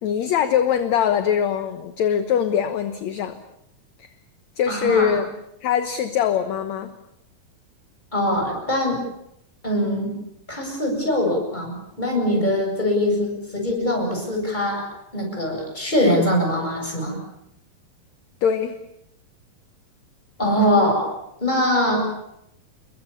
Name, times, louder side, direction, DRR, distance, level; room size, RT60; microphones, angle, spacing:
voice 1, 0.0-3.4 4.0-4.1 4.6-5.3 5.6-6.9 18.4-18.8, left 8 dB, 60° left, 9 dB, 2.1 m, -22 dB
voice 2, 4.7-5.1 8.1-9.0 9.6-10.1 10.5-14.8 15.1-17.2 20.4-21.1 21.4-22.1, left 1 dB, 10° left, 1 dB, 7.9 m, -22 dB
29.5 x 22.0 x 7.2 m, 0.79 s
omnidirectional pair, 4.1 m